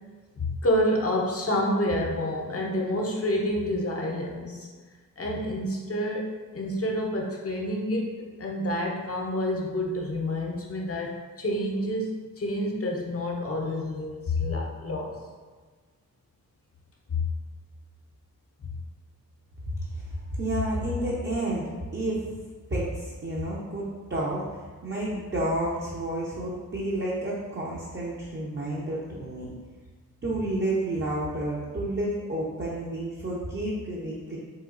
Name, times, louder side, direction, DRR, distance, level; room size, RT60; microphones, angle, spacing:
voice 1, 0.4-4.7 5.2-6.3 6.5-8.1 8.4-15.2 17.1-17.3 18.6-18.7, left 1 dB, 40° left, 0 dB, 0.7 m, -28 dB
voice 2, 19.7-22.3 22.7-29.5 30.2-34.4, right 1 dB, 30° right, -6 dB, 0.7 m, -30 dB
4.0 x 2.2 x 2.5 m, 1.4 s
cardioid pair, 55°, 36 cm